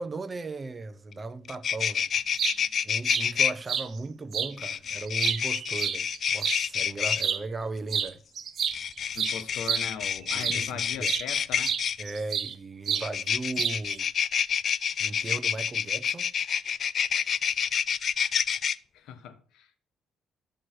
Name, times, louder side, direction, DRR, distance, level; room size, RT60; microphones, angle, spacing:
voice 1, 0.0-2.1 2.8-8.2 10.3-11.1 12.0-14.1 15.0-16.3, right 3 dB, 25° right, 0.9 m, -37 dB
sound 1, 1.1-1.2 1.4-3.5 4.6-7.2 8.6-12.0 13.0-18.7, left 7 dB, 50° left, 0.4 m, -28 dB
sound 2, 2.2-2.6 3.1-3.3 3.7-3.9 4.3-4.5 5.0-6.6 7.1-7.4 7.9-8.1 8.4-10.7 11.0-11.3 11.6-12.5 12.9-13.1 13.6-14.0, right 8 dB, 55° right, 0.9 m, -29 dB
voice 2, 9.1-11.8 18.9-19.8, left 7 dB, 80° left, 1.2 m, -39 dB
13.0 x 6.3 x 4.6 m
cardioid pair, 105°, 0 cm